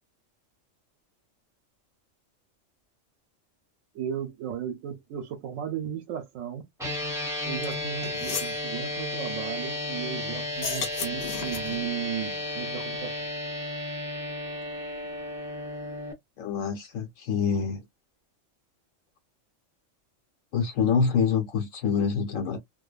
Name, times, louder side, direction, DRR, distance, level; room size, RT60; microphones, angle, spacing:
voice 1, 3.9-6.7 7.4-13.1, right 9 dB, 90° right, 1.0 m, -35 dB
sound 1, 6.8-16.1, left 1 dB, 5° right, 0.8 m, -33 dB
sound 2, 7.6-7.7 8.0-8.6 10.5-11.8, left 5 dB, 60° left, 0.4 m, -34 dB
voice 2, 16.4-17.8 20.5-22.6, left 6 dB, 90° left, 1.3 m, -26 dB
2.6 x 2.2 x 2.3 m
omnidirectional pair, 1.3 m